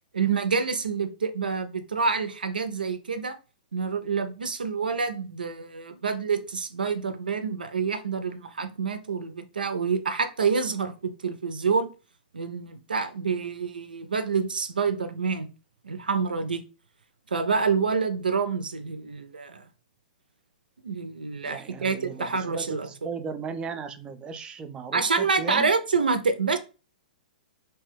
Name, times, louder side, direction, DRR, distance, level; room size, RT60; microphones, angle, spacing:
voice 1, 0.1-3.4 3.7-11.9 12.3-15.5 15.8-16.6 17.3-19.6 20.8-22.9 24.9-26.6, right 5 dB, 85° right, 0.4 m, -27 dB
voice 2, 21.4-25.7, right 6 dB, 20° right, 0.3 m, -36 dB
2.8 x 2.2 x 3.3 m
hypercardioid pair, 115°, 5 cm